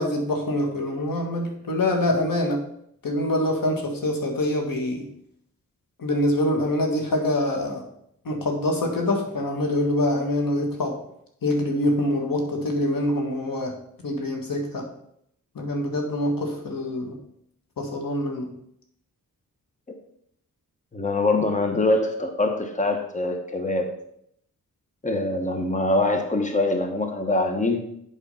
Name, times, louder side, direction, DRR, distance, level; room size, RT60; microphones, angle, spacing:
voice 1, 0.0-2.6 3.0-5.0 6.0-7.8 8.3-11.0 11.4-13.7 14.0-14.9 15.6-17.2 17.8-18.5, left 1 dB, 85° left, 2 dB, 1.7 m, -25 dB
voice 2, 20.9-23.9 25.0-27.9, left 2 dB, 20° left, 5 dB, 1.0 m, -24 dB
8.0 x 4.9 x 5.5 m, 0.72 s
wide cardioid pair, 95°, 33 cm